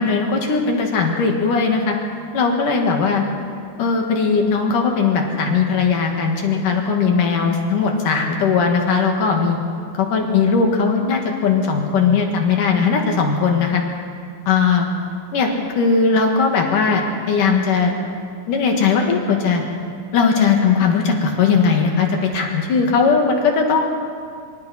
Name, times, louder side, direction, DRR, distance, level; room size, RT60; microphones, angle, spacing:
voice 1, 0.0-2.0 2.3-3.2 3.8-9.6 9.9-13.8 14.5-14.9 15.3-17.9 18.5-19.6 20.1-23.8, left 5 dB, 65° left, 2 dB, 3.4 m, -18 dB
25.0 x 24.5 x 4.3 m, 2.2 s
omnidirectional pair, 4.0 m